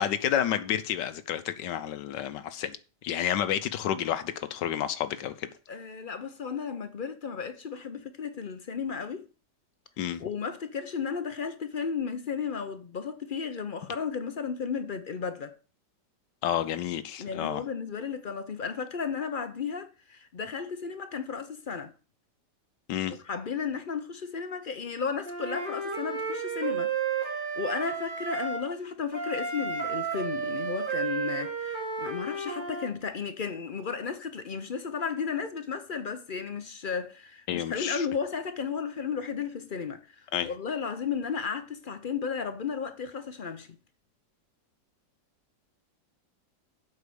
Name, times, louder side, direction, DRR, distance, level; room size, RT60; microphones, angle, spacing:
voice 1, 0.0-2.8 3.0-5.5 10.0-10.3 16.4-17.6 22.9-23.2 37.5-38.1 40.3-40.5, left 10 dB, 85° left, 1.4 m, -30 dB
voice 2, 5.7-9.2 10.2-15.5 17.2-21.9 23.2-43.7, left 6 dB, 55° left, 0.5 m, -34 dB
Wind instrument woodwind instrument, 25.2-28.6 29.1-32.9, right 5 dB, 30° right, 2.6 m, -32 dB
8.1 x 5.6 x 6.9 m
omnidirectional pair, 1.9 m